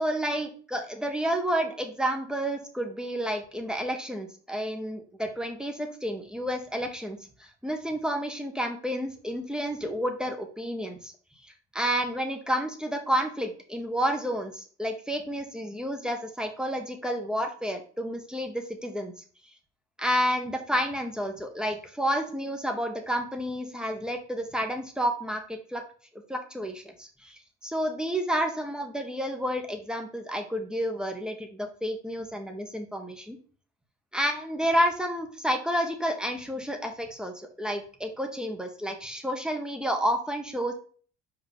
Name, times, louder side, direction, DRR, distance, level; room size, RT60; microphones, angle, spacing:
voice 1, 0.0-11.1 11.7-19.1 20.0-25.8 26.3-33.4 34.1-40.7, equal, ahead, 4 dB, 1.6 m, -30 dB
5.1 x 5.1 x 3.7 m, 0.42 s
hypercardioid pair, 70°, 34 cm